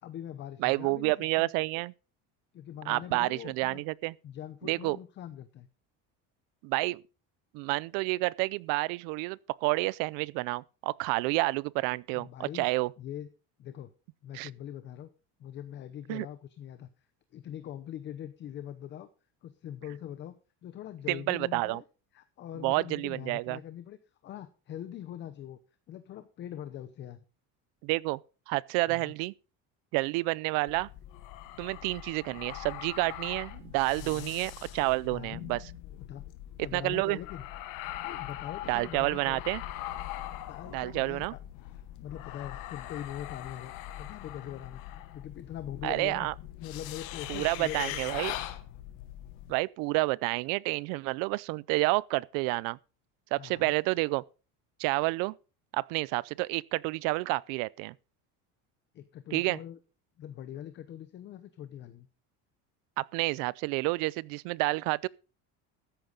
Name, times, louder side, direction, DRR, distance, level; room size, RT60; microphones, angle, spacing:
voice 1, 0.0-1.5 2.5-3.8 4.2-5.7 12.1-12.7 13.0-13.3 13.6-13.9 14.2-15.1 15.4-16.9 17.3-19.1 19.4-20.3 20.6-21.8 22.1-24.0 24.2-25.6 25.9-27.2 28.9-29.1 34.0-34.4 35.1-35.4 36.0-36.3 36.6-37.4 38.0-39.4 40.5-41.4 41.7-44.8 45.1-46.3 46.6-48.2 53.4-53.7 58.9-59.8 60.2-62.1, left 11 dB, 30° left, 0.7 m, -42 dB
voice 2, 0.6-1.9 2.9-4.1 4.6-5.0 6.6-7.0 7.5-12.9 14.3-14.5 16.1-16.3 21.1-21.8 22.6-23.6 27.8-28.2 28.5-29.3 29.9-30.9 31.6-35.7 36.7-37.2 38.7-39.6 40.7-41.3 45.8-46.3 47.3-48.3 49.5-52.8 53.3-54.2 54.8-55.3 55.7-57.9 59.3-59.6 63.0-65.1, right 23 dB, 70° right, 0.6 m, -29 dB
sound 1, 30.7-49.5, left 13 dB, 65° left, 1.4 m, -42 dB
13.5 x 10.0 x 3.9 m
cardioid pair, 170°, 35 cm